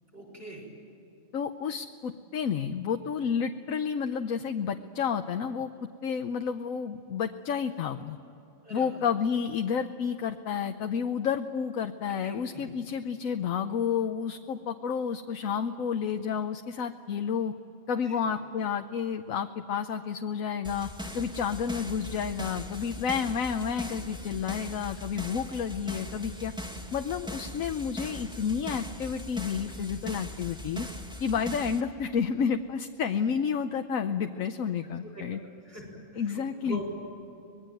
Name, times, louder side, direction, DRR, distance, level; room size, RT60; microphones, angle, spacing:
voice 1, 0.1-0.7 8.6-9.0 12.1-12.7 18.0-18.2 35.0-35.4 35.6-35.8 36.1-36.8, right 1 dB, 45° right, 0 dB, 6.6 m, -43 dB
voice 2, 1.3-8.2 8.7-17.5 17.9-20.9 21.1-26.5 26.9-30.9 31.2-35.4 36.2-36.8, left 7 dB, 85° left, 6 dB, 1.2 m, -30 dB
sound 1, 20.6-31.8, left 1 dB, 5° right, 2.2 m, -40 dB
25.5 x 21.0 x 9.2 m, 3.0 s
omnidirectional pair, 1.4 m